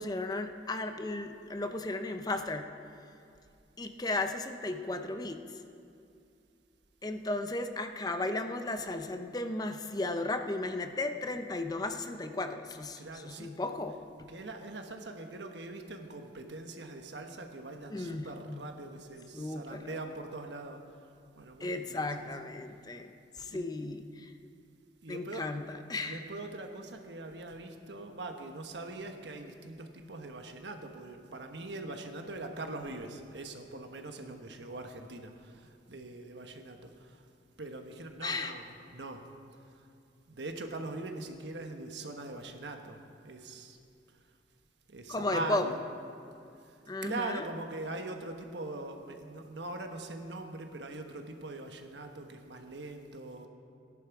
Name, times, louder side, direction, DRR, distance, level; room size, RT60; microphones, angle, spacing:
voice 1, 0.0-2.6 3.8-5.4 7.0-14.0 17.9-18.7 19.3-20.0 21.6-23.1 23.4-24.3 25.1-26.2 38.2-38.5 45.1-45.7 46.9-47.4, left 2 dB, 20° left, 7 dB, 0.6 m, -35 dB
voice 2, 13.0-13.7 14.3-20.8 21.4-22.4 23.5-23.7 25.0-25.5 26.0-37.2 37.6-39.2 40.3-43.0 43.2-43.8 44.9-45.9 47.0-53.5, right 2 dB, 75° right, 5 dB, 1.2 m, -42 dB
17.5 x 11.0 x 4.7 m, 2.5 s
head